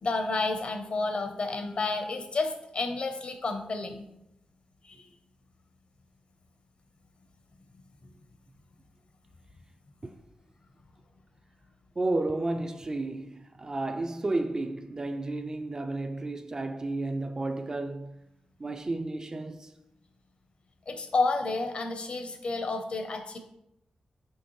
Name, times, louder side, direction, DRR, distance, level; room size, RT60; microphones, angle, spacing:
voice 1, 0.0-4.0 4.8-5.1 20.9-23.4, left 3 dB, 50° left, 0.7 m, -30 dB
voice 2, 12.0-18.2 18.6-19.7, right 2 dB, 25° right, 0.3 m, -32 dB
6.3 x 5.1 x 3.1 m
wide cardioid pair, 160°, 2 cm